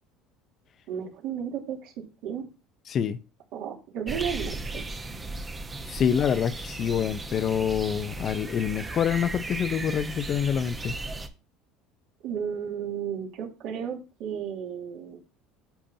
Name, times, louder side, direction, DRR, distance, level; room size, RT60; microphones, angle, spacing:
voice 1, 0.9-2.5 3.5-4.9 12.2-15.2, right 8 dB, 70° right, 3.0 m, -33 dB
voice 2, 2.9-3.2 5.9-10.9, left 8 dB, 35° left, 0.7 m, -26 dB
sound 1, 4.1-11.3, right 2 dB, 15° right, 1.0 m, -36 dB
10.0 x 7.4 x 2.8 m
cardioid pair, 140°, 0 cm